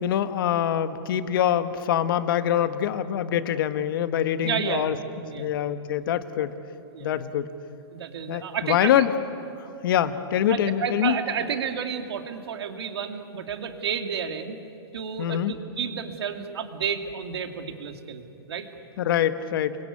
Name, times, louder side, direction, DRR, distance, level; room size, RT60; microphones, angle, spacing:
voice 1, 0.0-4.9 5.4-6.5 7.0-7.5 8.3-9.1 9.6-11.2 15.2-15.5 19.0-19.8, left 10 dB, 60° left, 11 dB, 1.4 m, -24 dB
voice 2, 4.4-4.9 5.3-5.5 6.9-7.2 7.9-9.1 10.5-14.6 14.9-18.7, right 7 dB, 75° right, 6 dB, 2.6 m, -31 dB
28.5 x 23.0 x 8.6 m, 2.8 s
hypercardioid pair, 150°, 13 cm